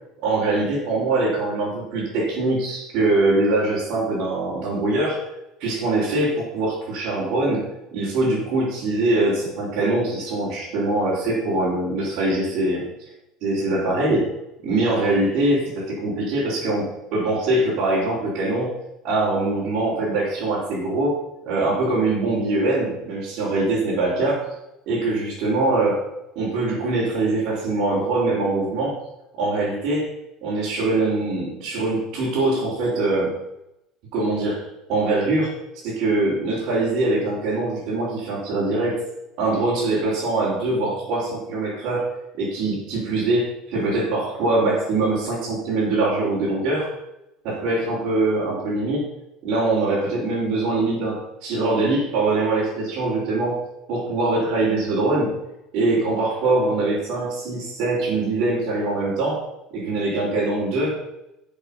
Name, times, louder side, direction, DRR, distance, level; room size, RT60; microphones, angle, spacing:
voice 1, 0.2-5.2 5.6-7.6 7.9-12.8 13.4-14.2 14.6-18.7 19.0-21.1 21.5-24.5 24.9-26.1 26.3-28.9 29.4-30.1 30.4-33.3 34.1-34.6 34.9-35.5 35.8-39.0 39.4-42.1 42.4-46.9 47.4-49.0 49.4-53.6 53.9-55.3 55.7-59.4 59.7-60.9, right 2 dB, 55° right, -10 dB, 4.3 m, -23 dB
11.5 x 7.2 x 5.4 m, 0.88 s
cardioid pair, 165°, 0 cm